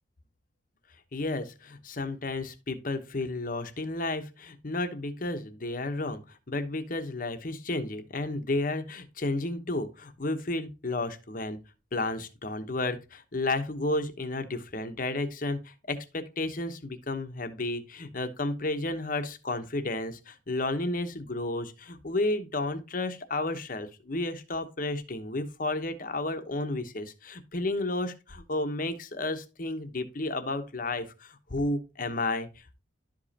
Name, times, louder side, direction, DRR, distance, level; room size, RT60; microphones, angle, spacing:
voice 1, 1.1-11.6 11.9-32.8, left 2 dB, 45° left, 8 dB, 1.0 m, -32 dB
12.0 x 5.1 x 2.8 m, 0.28 s
head